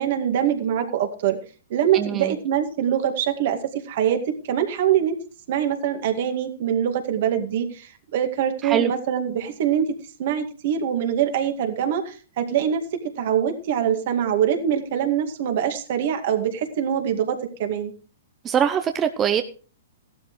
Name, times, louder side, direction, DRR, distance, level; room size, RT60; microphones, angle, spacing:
voice 1, 0.0-1.4 1.7-3.6 3.9-5.2 5.5-9.9 10.2-12.8 13.2-17.9, right 9 dB, 55° right, 5 dB, 2.1 m, -24 dB
voice 2, 1.9-2.3 8.6-8.9 18.4-19.4, right 9 dB, 25° right, 8 dB, 0.8 m, -22 dB
15.5 x 12.0 x 3.2 m, 0.37 s
hypercardioid pair, 120°, 0 cm